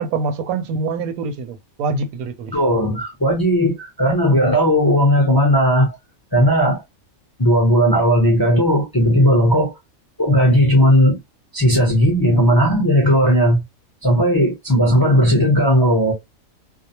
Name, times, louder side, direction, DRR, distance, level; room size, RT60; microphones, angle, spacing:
voice 1, 0.0-2.5, right 4 dB, 85° right, 1.0 m, -25 dB
voice 2, 2.5-5.9 6.3-6.8 7.4-9.8 10.2-11.2 11.5-13.6 14.0-16.1, equal, 30° left, 0.4 m, -16 dB
2.6 x 2.0 x 2.8 m
omnidirectional pair, 1.5 m